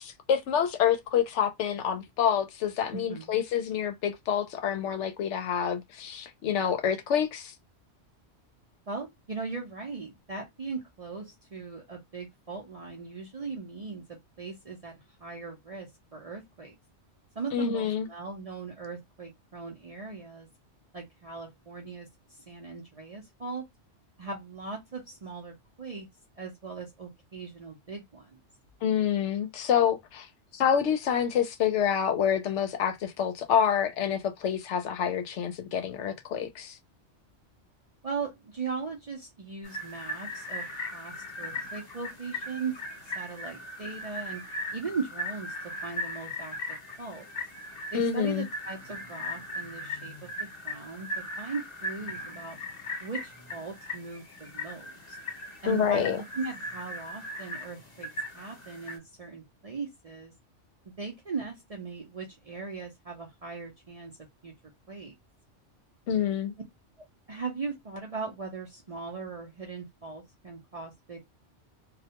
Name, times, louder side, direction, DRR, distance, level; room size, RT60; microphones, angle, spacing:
voice 1, 0.0-7.5 17.5-18.1 28.8-30.3 30.5-36.8 47.9-48.5 55.7-56.2 66.1-66.5, left 8 dB, 75° left, 0.9 m, -27 dB
voice 2, 2.9-3.4 8.9-14.9 15.2-16.7 17.4-20.5 20.9-23.6 24.2-26.1 26.4-28.4 38.0-42.8 43.0-44.4 44.7-47.3 47.9-52.6 53.0-55.2 55.6-60.3 60.9-64.5 64.9-65.2 67.0-71.2, right 4 dB, 45° right, 0.5 m, -39 dB
sound 1, 39.6-59.0, left 1 dB, 35° left, 1.1 m, -38 dB
2.3 x 2.1 x 2.8 m
omnidirectional pair, 1.2 m